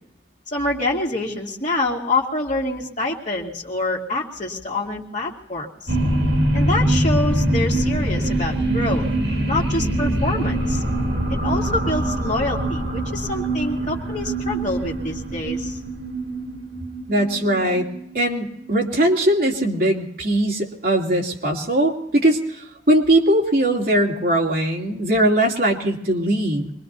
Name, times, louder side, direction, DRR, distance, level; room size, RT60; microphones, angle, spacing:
voice 1, 0.5-5.9 6.5-9.1 9.5-10.8 11.4-15.8, left 2 dB, 45° left, -1 dB, 2.5 m, -26 dB
sound 1, 5.9-18.7, right 1 dB, 85° right, 2.0 m, -23 dB
voice 2, 17.1-17.9 18.1-26.7, right 1 dB, 55° right, 0 dB, 2.8 m, -20 dB
25.0 x 21.0 x 2.7 m, 0.81 s
head